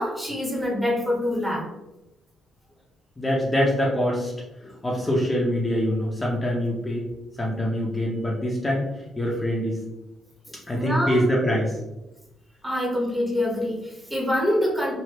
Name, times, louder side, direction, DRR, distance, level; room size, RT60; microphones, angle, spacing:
voice 1, 0.0-1.7 4.6-4.7 10.7-11.2 12.6-14.9, left 1 dB, 10° right, -2 dB, 1.1 m, -25 dB
voice 2, 3.2-4.3 4.8-7.0 7.4-9.8 10.7-11.7, equal, 15° left, -4 dB, 0.7 m, -24 dB
3.2 x 2.6 x 2.9 m, 0.98 s
cardioid pair, 90°, 0 cm